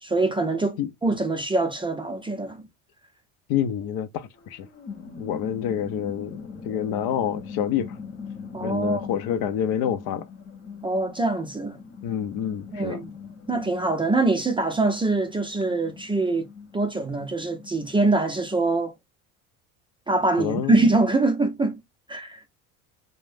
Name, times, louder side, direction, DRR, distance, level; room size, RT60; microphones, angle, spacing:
voice 1, 0.0-2.7 8.5-9.1 10.8-11.8 12.7-13.1 13.5-16.5 16.7-18.9 20.1-21.8 22.1-22.4, right 2 dB, 10° right, 0.5 m, -24 dB
voice 2, 3.5-4.7 5.2-8.0 8.6-10.3 12.0-13.0 20.4-20.9, left 9 dB, 55° left, 0.6 m, -28 dB
sound 1, 4.4-18.6, left 5 dB, 25° left, 0.9 m, -41 dB
3.1 x 2.2 x 2.5 m
hypercardioid pair, 85°, 45 cm